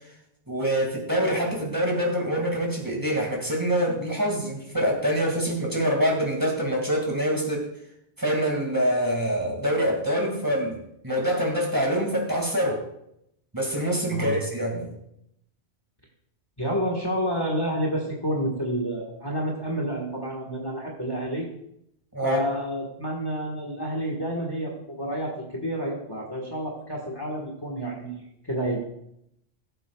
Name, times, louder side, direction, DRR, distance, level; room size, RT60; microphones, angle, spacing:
voice 1, 0.5-7.7 8.2-10.8 11.0-12.8 13.5-14.9 22.1-22.4, equal, 15° right, -1 dB, 2.1 m, -25 dB
voice 2, 14.1-14.4 16.6-21.5 22.2-28.8, equal, 20° left, -1 dB, 1.5 m, -29 dB
18.5 x 7.7 x 2.3 m, 0.77 s
omnidirectional pair, 1.2 m